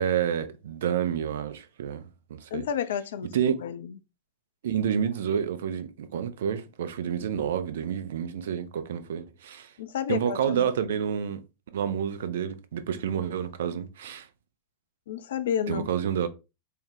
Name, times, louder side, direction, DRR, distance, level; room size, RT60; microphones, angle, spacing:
voice 1, 0.0-2.0 2.3-2.7 3.3-3.6 4.6-9.7 10.1-11.4 11.7-14.3 15.7-16.3, right 8 dB, 60° right, 0.5 m, -29 dB
voice 2, 2.5-3.3 3.6-3.9 9.8-10.7 15.1-15.9, left 8 dB, 60° left, 0.4 m, -30 dB
4.4 x 2.1 x 3.6 m
figure-of-eight pair, 90°, 0 cm